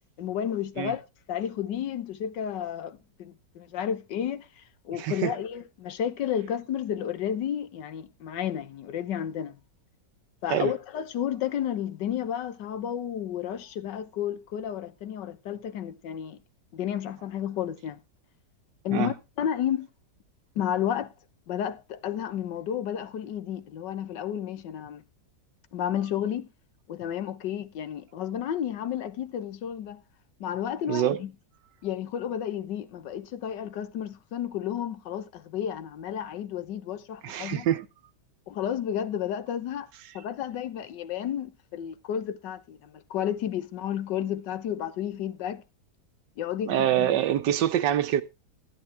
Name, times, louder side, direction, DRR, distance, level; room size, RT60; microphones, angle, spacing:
voice 1, 0.2-1.0 1.3-9.6 10.4-16.4 16.7-18.0 18.8-19.9 20.6-21.1 21.5-25.0 25.7-26.5 26.9-30.0 30.4-31.3 31.8-37.7 38.5-39.9 40.1-45.6 46.4-47.1, left 9 dB, 85° left, 1.6 m, -32 dB
voice 2, 5.0-5.3 10.5-10.7 18.9-19.1 30.9-31.2 37.2-37.9 46.7-48.2, right 11 dB, 80° right, 1.5 m, -25 dB
12.5 x 11.0 x 3.4 m
omnidirectional pair, 1.8 m